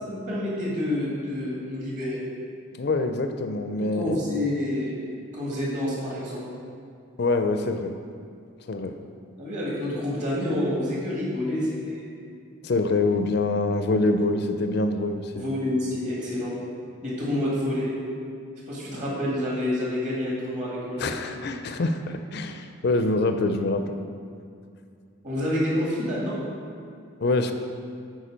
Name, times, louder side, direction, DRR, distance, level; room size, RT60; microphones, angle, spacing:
voice 1, 0.0-2.2 3.8-4.9 5.3-6.4 9.4-12.2 15.4-16.5 17.0-17.9 18.7-21.2 25.2-26.4, left 1 dB, 35° right, -6 dB, 2.1 m, -28 dB
voice 2, 2.8-4.2 7.2-7.9 8.7-9.0 12.6-15.4 21.0-24.0 27.2-27.5, left 2 dB, 50° left, 7 dB, 0.4 m, -25 dB
8.7 x 4.7 x 5.1 m, 2.3 s
head